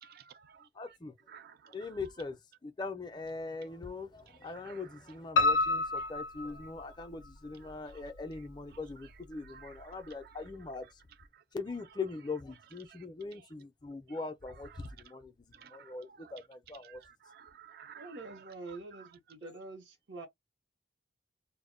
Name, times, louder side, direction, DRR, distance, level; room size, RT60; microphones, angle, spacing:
voice 1, 0.0-0.6 1.3-1.5 4.7-4.8 9.5-9.7 15.6-15.9 16.8-17.0 17.3-18.2 18.7-19.1, right 8 dB, 55° right, 0.3 m, -53 dB
voice 2, 0.7-1.1 1.7-11.0 11.5-17.0, left 3 dB, 25° left, 0.4 m, -41 dB
Piano, 5.4-7.3 7.7-8.6 8.9-9.0 9.4-9.5 9.8-9.9, left 3 dB, 90° left, 0.4 m, -29 dB
voice 3, 17.9-20.3, right 3 dB, 80° right, 0.7 m, -46 dB
2.1 x 2.0 x 3.6 m
head